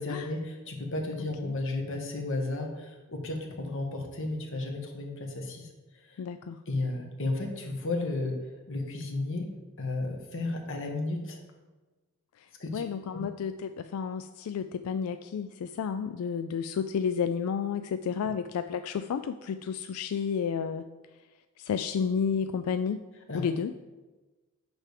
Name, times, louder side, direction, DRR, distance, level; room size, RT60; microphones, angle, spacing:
voice 1, 0.0-6.2 6.7-9.5 9.8-11.4 12.6-13.2 23.3-23.4, left 2 dB, 65° left, 2 dB, 1.4 m, -33 dB
voice 2, 6.2-6.6 12.4-20.8 21.6-23.0 23.3-23.7, left 6 dB, 90° left, 10 dB, 0.3 m, -31 dB
8.9 x 3.4 x 6.6 m, 1.2 s
head